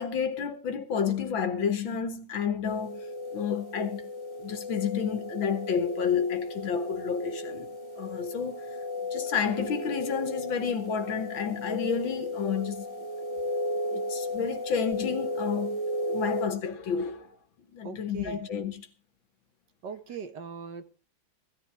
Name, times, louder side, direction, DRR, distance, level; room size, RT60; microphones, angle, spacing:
voice 1, 0.0-3.1 3.3-4.1 4.4-7.7 8.0-8.6 9.1-12.9 13.9-15.8 16.1-17.3 17.7-18.9, left 7 dB, 70° left, 2.2 m, -30 dB
sound 1, 2.6-16.5, left 1 dB, 20° right, 1.9 m, -35 dB
voice 2, 17.8-18.4 19.8-20.8, right 5 dB, 60° right, 1.7 m, -40 dB
18.0 x 13.5 x 3.5 m
omnidirectional pair, 2.2 m